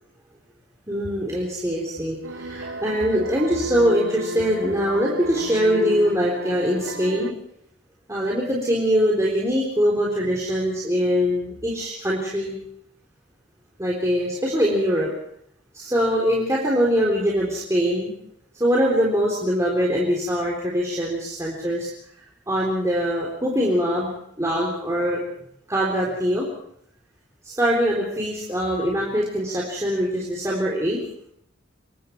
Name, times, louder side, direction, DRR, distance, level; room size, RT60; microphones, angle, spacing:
voice 1, 0.9-7.3 8.1-12.5 13.8-15.1 15.7-18.2 18.6-21.9 22.5-24.1 24.4-25.2 25.7-26.5 27.4-31.0, equal, 15° right, -4 dB, 3.9 m, -23 dB
sound 1, 2.2-7.3, right 1 dB, 75° right, 1.2 m, -32 dB
26.0 x 22.5 x 4.7 m, 0.72 s
head